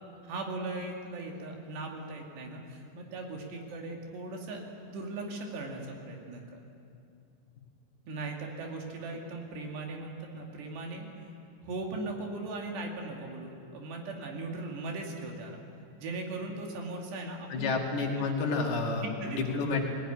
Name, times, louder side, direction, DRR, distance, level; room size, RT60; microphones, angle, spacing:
voice 1, 0.3-6.6 8.1-11.1 11.6-15.6 16.0-17.7 19.2-19.6, right 2 dB, 75° right, 1 dB, 4.5 m, -38 dB
voice 2, 17.5-19.9, left 3 dB, 65° left, 0 dB, 4.0 m, -30 dB
20.5 x 17.0 x 9.8 m, 2.5 s
omnidirectional pair, 5.0 m